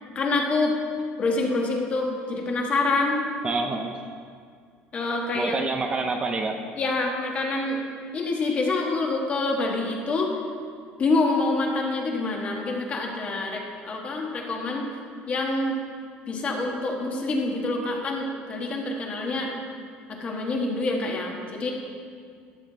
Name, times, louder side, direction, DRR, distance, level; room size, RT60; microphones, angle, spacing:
voice 1, 0.1-0.7 1.2-3.2 4.9-5.6 6.8-7.8 8.1-10.3 11.0-14.9 15.3-15.8 16.3-19.5 20.1-21.7, left 3 dB, 30° left, 0 dB, 1.4 m, -26 dB
voice 2, 3.4-4.0 5.3-6.6, right 3 dB, 25° right, 4 dB, 0.6 m, -27 dB
12.0 x 7.1 x 4.0 m, 2.2 s
cardioid pair, 140°, 4 cm